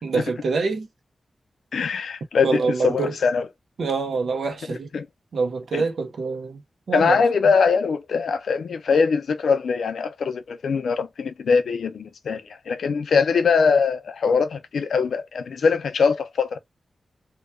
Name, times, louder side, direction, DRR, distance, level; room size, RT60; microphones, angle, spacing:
voice 1, 0.0-0.9 2.4-3.1 3.8-4.9 5.3-6.6 6.9-7.3, right 4 dB, 70° right, 0.8 m, -25 dB
voice 2, 1.7-3.4 4.9-5.1 5.7-5.8 6.9-16.6, left 5 dB, 85° left, 0.5 m, -22 dB
2.8 x 2.3 x 2.2 m
wide cardioid pair, 140°, 0 cm